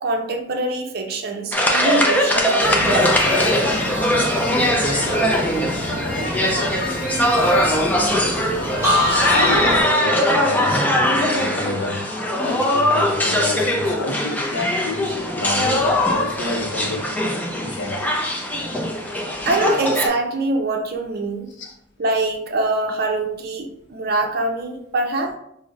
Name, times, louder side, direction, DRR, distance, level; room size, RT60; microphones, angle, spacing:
voice 1, 0.0-3.2 7.4-7.5 19.5-21.5 22.0-25.4, right 2 dB, 50° right, 3 dB, 0.5 m, -24 dB
sound 1, 1.5-20.1, left 1 dB, 10° left, 0.4 m, -21 dB
sound 2, 2.6-9.8, left 1 dB, 50° left, 1.0 m, -28 dB
sound 3, 8.8-12.6 13.0-13.5, left 1 dB, 15° right, 0.7 m, -25 dB
voice 2, 9.3-12.1 12.4-17.2 17.6-18.1 21.5-21.7, left 2 dB, 65° left, 2 dB, 0.7 m, -29 dB
5.4 x 2.1 x 2.4 m, 0.73 s
head